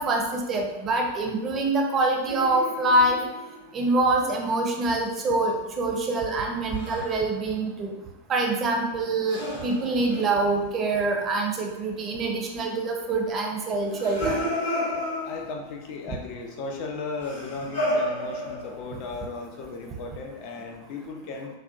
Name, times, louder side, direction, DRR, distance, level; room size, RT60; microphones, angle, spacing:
voice 1, 0.0-3.2 3.7-7.9 8.3-14.4, right 2 dB, 25° right, 1 dB, 0.4 m, -25 dB
sound 1, 2.3-3.7 6.7-7.2 9.3-11.0 13.8-15.7 17.2-19.0, equal, 80° left, 1.1 m, -32 dB
voice 2, 15.2-21.5, left 3 dB, 45° left, 2 dB, 0.4 m, -36 dB
2.6 x 2.1 x 2.3 m, 1.0 s
figure-of-eight pair, 90°, 0 cm